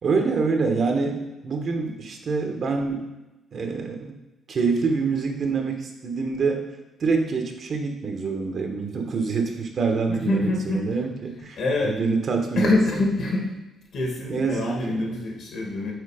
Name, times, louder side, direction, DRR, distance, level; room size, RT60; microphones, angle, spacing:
voice 1, 0.0-3.1 3.5-4.2 4.5-6.7 7.0-12.7 14.3-15.1, right 4 dB, 55° right, 3 dB, 1.2 m, -26 dB
voice 2, 10.1-10.9 11.6-12.0 12.6-13.5 13.9-15.9, left 2 dB, 65° left, -1 dB, 2.2 m, -25 dB
6.5 x 4.5 x 5.0 m, 1.0 s
cardioid pair, 90°, 0 cm